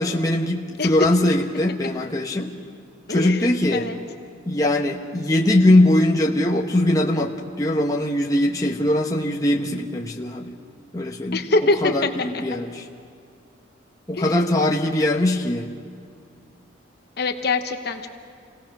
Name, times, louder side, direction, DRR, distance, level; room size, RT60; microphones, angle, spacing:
voice 1, 0.0-2.5 3.1-3.9 4.5-10.6 10.9-11.4 11.8-12.9 14.1-15.7, left 1 dB, 15° left, -1 dB, 1.0 m, -21 dB
voice 2, 3.1-4.0 11.3-12.1 14.1-14.3 17.2-18.1, left 3 dB, 50° left, 6 dB, 1.0 m, -24 dB
27.5 x 18.0 x 6.1 m, 2.2 s
head